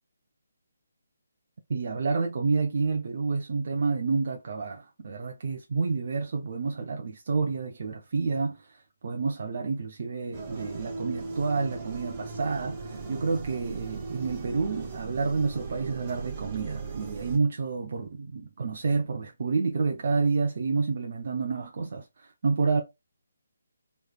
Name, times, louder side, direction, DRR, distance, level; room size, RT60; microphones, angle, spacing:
voice 1, 1.7-22.8, right 4 dB, 50° right, 0.5 m, -29 dB
sound 1, 10.3-17.4, right 4 dB, 30° right, 1.1 m, -38 dB
3.2 x 3.2 x 2.2 m
figure-of-eight pair, 150°, 0 cm